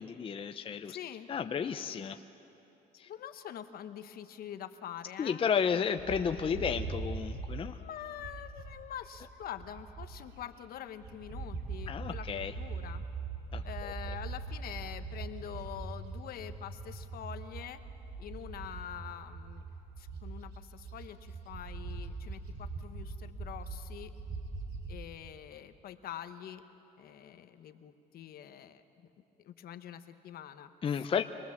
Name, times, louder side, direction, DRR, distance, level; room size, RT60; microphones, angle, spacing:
voice 1, 0.0-1.0 1.3-2.2 3.0-3.1 5.2-7.8 11.9-12.5 13.5-13.9 30.8-31.2, left 7 dB, 30° left, 7 dB, 0.6 m, -32 dB
voice 2, 0.9-1.3 3.1-5.8 7.8-12.3 12.6-13.0 13.6-17.8 18.2-19.6 20.0-24.1 24.9-26.6 27.0-29.1 29.4-31.2, left 10 dB, 60° left, 9 dB, 1.1 m, -45 dB
Bird, 6.0-10.5 10.8-25.0, right 3 dB, 75° right, 3.7 m, -42 dB
25.5 x 19.5 x 7.3 m, 2.9 s
cardioid pair, 110°, 17 cm